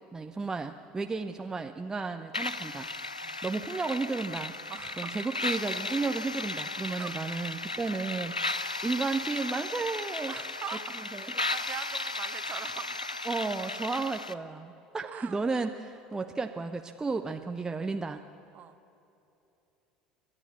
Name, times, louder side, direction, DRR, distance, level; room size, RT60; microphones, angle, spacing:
voice 1, 0.1-2.9 3.4-4.5 5.0-10.3 11.0-11.3 13.2-18.2, right 4 dB, 15° right, 6 dB, 0.8 m, -33 dB
sound 1, 2.3-14.3, left 3 dB, 90° left, 0.5 m, -35 dB
voice 2, 4.7-5.1 6.9-7.1 10.3-13.2 15.0-15.4 18.5-18.8, right 9 dB, 40° right, 9 dB, 1.3 m, -42 dB
30.0 x 12.0 x 8.5 m, 2.9 s
figure-of-eight pair, 70°, 4 cm